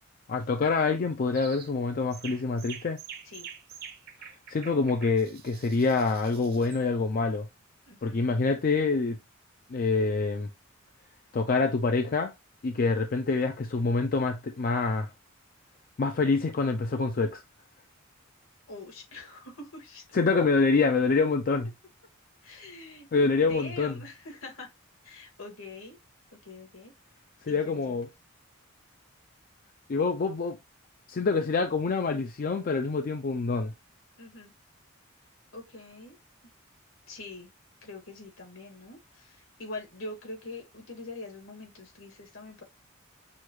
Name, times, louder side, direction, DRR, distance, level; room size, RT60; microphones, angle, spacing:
voice 1, 0.3-3.0 4.5-7.5 8.0-9.2 9.7-10.5 11.3-12.3 12.6-15.1 16.0-17.4 20.1-21.7 23.1-23.9 27.5-28.1 29.9-30.6 31.1-33.7, left 4 dB, 40° left, 0.4 m, -26 dB
sound 1, 1.3-1.7 2.1-6.8, right 8 dB, 45° right, 0.7 m, -46 dB
voice 2, 7.8-8.2 18.7-20.0 22.4-23.1 23.4-24.7 25.0-26.0 26.3-26.9 27.5-28.0 34.2-34.5 35.5-36.2 37.1-37.5 37.8-42.6, left 2 dB, 80° left, 1.9 m, -44 dB
6.3 x 2.3 x 3.1 m
head